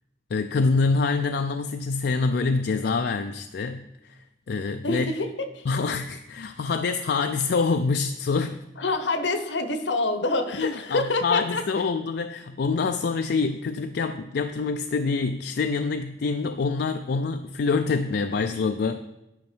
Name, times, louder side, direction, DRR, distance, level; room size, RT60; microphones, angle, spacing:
voice 1, 0.3-4.2 4.5-5.1 5.7-8.6 10.6-19.0, left 4 dB, 60° left, 7 dB, 0.4 m, -26 dB
voice 2, 4.8-5.7 8.8-11.6, left 2 dB, 75° left, 9 dB, 0.9 m, -26 dB
11.0 x 5.3 x 4.4 m, 0.93 s
head